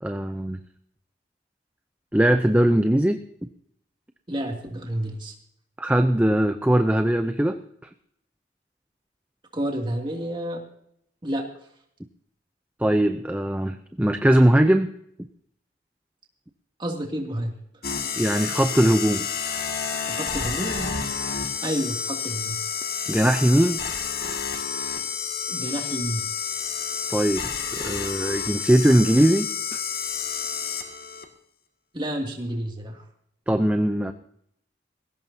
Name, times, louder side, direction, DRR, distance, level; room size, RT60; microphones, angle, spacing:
voice 1, 0.0-0.6 2.1-3.2 5.8-7.6 12.8-14.9 18.2-19.3 23.1-23.8 27.1-29.8 33.5-34.1, right 1 dB, 10° right, 7 dB, 0.6 m, -20 dB
voice 2, 4.3-5.3 9.5-10.6 11.2-11.5 16.8-17.5 20.1-20.9 21.6-22.6 25.5-26.2 31.9-33.0, right 1 dB, 25° right, 1 dB, 2.5 m, -29 dB
sound 1, 17.8-31.2, left 6 dB, 55° left, 2.0 m, -30 dB
20.5 x 16.5 x 2.8 m, 0.71 s
head